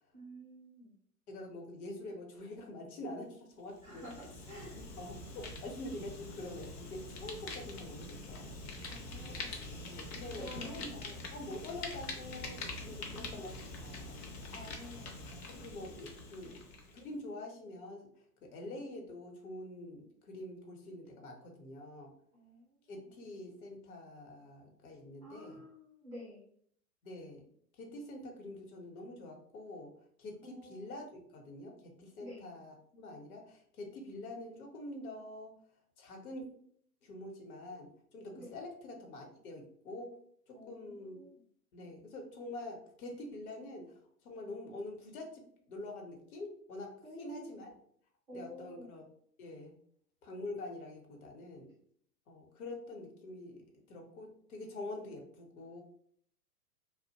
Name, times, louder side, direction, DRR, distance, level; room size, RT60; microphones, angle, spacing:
voice 1, 0.1-0.9 3.8-4.8 8.9-9.6 10.4-11.0 12.9-13.4 14.5-15.4 16.4-16.6 22.3-22.9 25.2-26.5 30.4-30.9 32.2-32.5 38.3-38.5 40.5-41.4 47.0-47.6 48.3-48.9, equal, 10° right, -10 dB, 0.3 m, -50 dB
voice 2, 1.3-4.1 4.8-8.6 9.9-14.2 15.2-16.6 16.9-18.1 18.4-22.1 22.9-25.6 27.0-27.4 27.8-29.9 30.2-35.5 36.0-36.4 37.0-40.1 40.5-41.2 41.7-47.7 48.3-49.0 49.4-49.7 50.2-51.7 52.3-55.8, left 1 dB, 65° left, 2 dB, 0.9 m, -46 dB
Fire, 3.7-17.1, left 2 dB, 40° left, 0.6 m, -45 dB
2.4 x 2.1 x 2.7 m, 0.63 s
hypercardioid pair, 110°, 47 cm